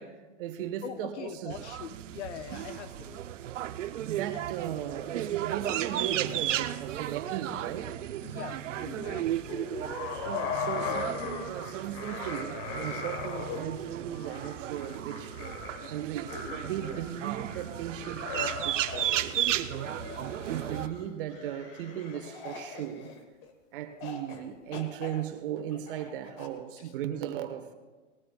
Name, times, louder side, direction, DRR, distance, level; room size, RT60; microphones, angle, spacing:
voice 1, 0.0-1.6 2.5-2.6 3.7-8.0 10.2-15.4 15.9-19.4 20.5-23.1 23.7-27.7, right 10 dB, 45° right, 1.4 m, -37 dB
voice 2, 0.8-3.2 8.2-9.6 12.8-13.0 26.8-26.9, left 8 dB, 65° left, 1.1 m, -42 dB
sound 1, 1.5-20.9, right 12 dB, 75° right, 0.8 m, -35 dB
Singing / Musical instrument, 2.5-11.3, right 7 dB, 20° right, 1.1 m, -54 dB
sound 2, 9.5-23.5 24.0-24.4 24.7-26.5, left 5 dB, 30° left, 1.6 m, -39 dB
20.0 x 16.5 x 2.4 m
hypercardioid pair, 155°, 38 cm